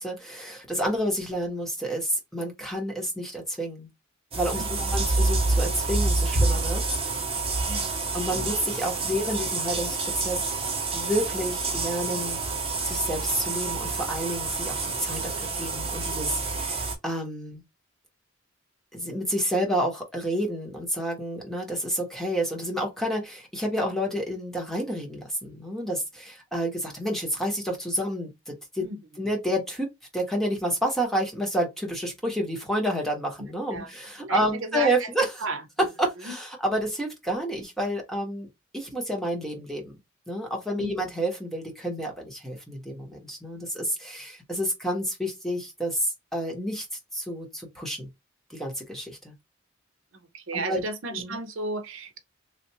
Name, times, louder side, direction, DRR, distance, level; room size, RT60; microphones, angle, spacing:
voice 1, 0.0-3.9 4.3-6.8 8.1-10.5 10.9-12.4 12.8-17.6 18.9-28.8 29.2-35.3 36.0-38.5 38.7-39.9 40.3-46.9 47.1-48.1 48.5-49.3 50.5-50.8 51.1-51.4, equal, ahead, 1.2 m, -29 dB
sound 1, 4.3-16.9, right 3 dB, 30° right, 0.9 m, -28 dB
voice 2, 4.6-5.0 7.7-8.5 8.8-9.1 28.8-29.0 33.7-33.9 34.2-35.1 35.4-35.6 36.2-36.4 40.8-40.9 50.3-52.2, right 2 dB, 70° right, 0.7 m, -34 dB
3.3 x 2.5 x 2.8 m
head